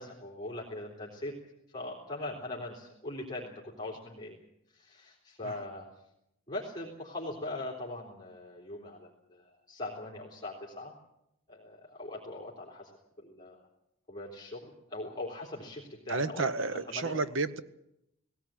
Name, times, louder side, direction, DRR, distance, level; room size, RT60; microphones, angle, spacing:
voice 1, 0.0-1.3 1.7-4.4 4.7-5.8 6.5-10.9 11.5-12.9 13.2-13.6 14.1-17.2, left 2 dB, 20° left, -3 dB, 3.4 m, -41 dB
voice 2, 16.1-17.6, right 3 dB, 65° right, 13 dB, 1.0 m, -31 dB
19.0 x 17.5 x 8.9 m, 0.83 s
head